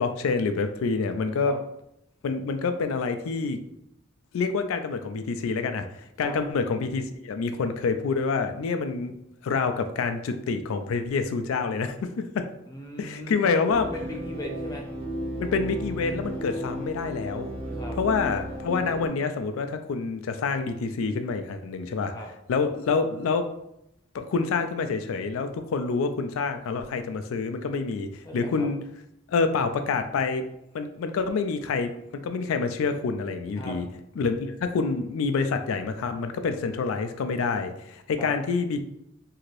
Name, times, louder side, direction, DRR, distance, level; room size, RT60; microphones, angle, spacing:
voice 1, 0.0-1.6 2.2-3.6 4.3-5.9 6.2-9.1 9.4-12.5 13.0-13.9 15.4-17.5 18.0-22.1 22.5-23.5 24.1-28.8 29.3-30.5 30.7-31.9 32.2-33.9 34.2-38.8, left 4 dB, 90° left, 8 dB, 0.4 m, -27 dB
voice 2, 12.7-14.9 17.7-18.0 22.1-22.3 28.2-28.7 33.6-33.8 38.2-38.3, left 1 dB, 15° left, 1 dB, 0.5 m, -38 dB
sound 1, 13.7-19.1, right 1 dB, 25° right, 0.6 m, -34 dB
3.1 x 2.8 x 2.5 m, 0.79 s
head